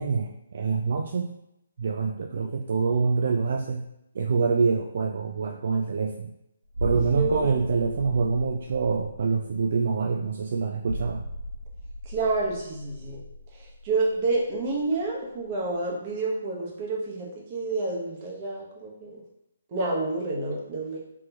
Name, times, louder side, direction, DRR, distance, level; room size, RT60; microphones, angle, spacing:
voice 1, 0.0-1.4 1.8-3.9 4.1-6.3 6.8-11.2, right 4 dB, 55° right, 4 dB, 0.3 m, -26 dB
sound 1, 6.7-15.1 15.4-15.6, equal, 85° right, 0.7 m, -37 dB
voice 2, 6.9-7.5 12.0-13.2 13.5-19.2 19.7-21.0, right 3 dB, 35° right, -3 dB, 1.1 m, -29 dB
3.5 x 3.2 x 2.9 m, 0.84 s
figure-of-eight pair, 140°, 0 cm